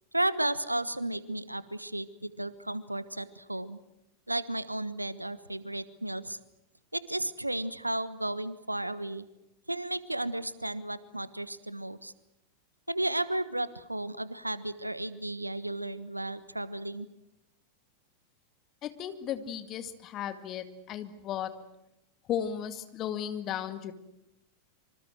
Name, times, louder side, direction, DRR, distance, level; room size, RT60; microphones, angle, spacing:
voice 1, 0.1-3.8 4.3-6.4 6.9-9.3 9.7-12.1 12.9-17.1, right 1 dB, 85° right, 16 dB, 1.3 m, -33 dB
voice 2, 18.8-21.5 22.3-23.9, left 9 dB, 35° left, 10 dB, 2.1 m, -35 dB
26.0 x 25.5 x 7.8 m, 0.87 s
figure-of-eight pair, 90°, 0 cm